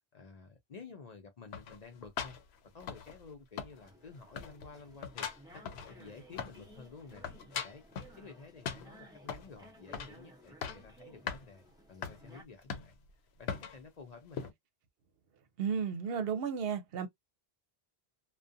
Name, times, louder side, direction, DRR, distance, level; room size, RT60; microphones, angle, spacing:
voice 1, 0.1-2.4 2.7-7.2 7.6-7.9 8.2-12.9 13.4-14.5, left 4 dB, 50° left, 0.5 m, -52 dB
sound 1, 1.5-3.3 3.6-4.1 4.3-6.7 7.0-8.2 8.6-9.5 9.9-10.2 10.4-10.9 11.3-11.4 12.0-12.2 12.7-13.1 13.5-13.8 14.3-14.5, left 7 dB, 80° left, 0.8 m, -40 dB
sound 2, 3.8-12.4, right 1 dB, 5° right, 0.6 m, -57 dB
voice 2, 15.6-17.1, right 7 dB, 70° right, 0.8 m, -33 dB
2.4 x 2.2 x 2.5 m
omnidirectional pair, 1.1 m